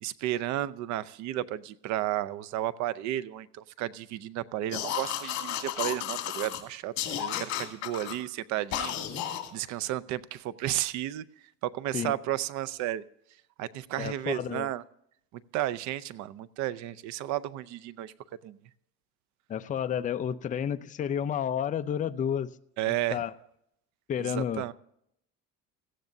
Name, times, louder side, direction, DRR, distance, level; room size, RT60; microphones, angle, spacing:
voice 1, 0.0-9.1 9.5-11.2 11.6-13.0 13.6-14.8 15.3-18.1 18.4-18.6 22.8-23.2 24.2-24.7, right 13 dB, 70° right, 0.6 m, -33 dB
sound 1, 4.7-6.6 7.0-8.2 8.7-9.5, left 11 dB, 60° left, 2.3 m, -33 dB
voice 2, 14.0-14.7 19.5-22.5 23.1-23.3 24.1-24.7, left 9 dB, 25° left, 0.5 m, -31 dB
17.5 x 15.0 x 2.7 m
cardioid pair, 145°, 30 cm